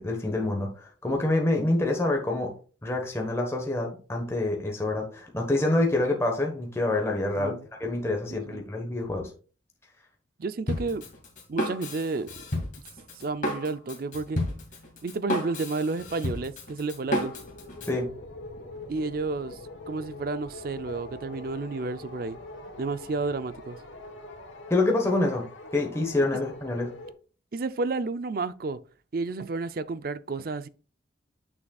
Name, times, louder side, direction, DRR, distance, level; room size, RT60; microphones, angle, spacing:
voice 1, 0.0-2.5 2.8-7.5 7.8-9.3 17.9-18.1 24.7-25.4 25.7-26.9, left 2 dB, 15° left, 1.2 m, -26 dB
voice 2, 7.4-7.7 8.3-8.6 10.4-11.0 11.5-12.3 13.2-14.4 15.0-17.3 18.9-19.6 19.9-22.4 22.8-23.8 26.3-26.4 27.5-28.8 29.1-30.7, right 3 dB, 50° right, 0.4 m, -31 dB
Drum kit, 10.7-18.0, left 1 dB, 40° left, 2.1 m, -32 dB
sound 1, 17.0-27.1, left 1 dB, 80° left, 1.5 m, -43 dB
9.5 x 6.2 x 2.3 m
head